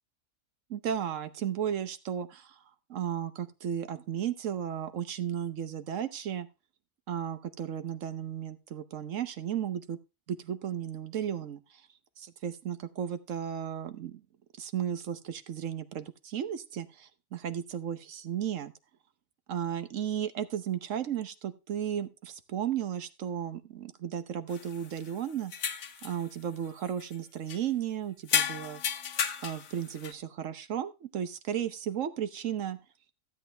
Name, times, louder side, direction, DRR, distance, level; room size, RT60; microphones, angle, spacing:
voice 1, 0.7-2.6 2.9-6.5 7.1-10.0 10.3-11.8 12.2-14.2 14.6-18.7 19.5-25.5 26.0-28.8 29.4-32.8, right 9 dB, 70° right, 12 dB, 1.2 m, -34 dB
sound 1, 24.5-25.1 25.5-26.2 26.7-27.2 27.5-27.6 28.3-30.1, left 7 dB, 90° left, 1.4 m, -33 dB
15.0 x 8.2 x 3.3 m, 0.29 s
omnidirectional pair, 1.4 m